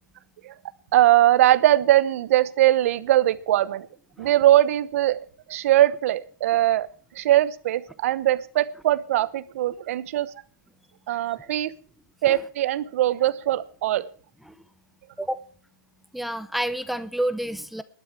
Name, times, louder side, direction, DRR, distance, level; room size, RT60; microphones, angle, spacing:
voice 1, 0.9-3.9 4.2-5.2 5.5-6.9 7.1-10.3 11.1-11.7 12.2-14.1, right 13 dB, 45° right, 17 dB, 1.0 m, -21 dB
voice 2, 16.1-17.8, right 1 dB, ahead, 13 dB, 0.6 m, -29 dB
19.5 x 12.0 x 3.3 m, 0.42 s
hypercardioid pair, 145°, 11 cm